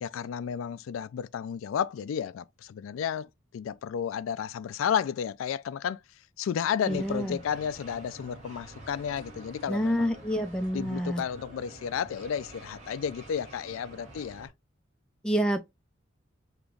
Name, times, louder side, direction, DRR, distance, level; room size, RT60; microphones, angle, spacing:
voice 1, 0.0-6.0 6.4-10.1 10.7-14.5, left 8 dB, 80° left, 0.3 m, -32 dB
sound 1, 6.8-14.5, right 1 dB, 35° right, 1.9 m, -48 dB
voice 2, 6.9-7.4 9.7-11.2 15.2-15.6, equal, 5° left, 0.4 m, -28 dB
5.1 x 2.9 x 2.3 m
head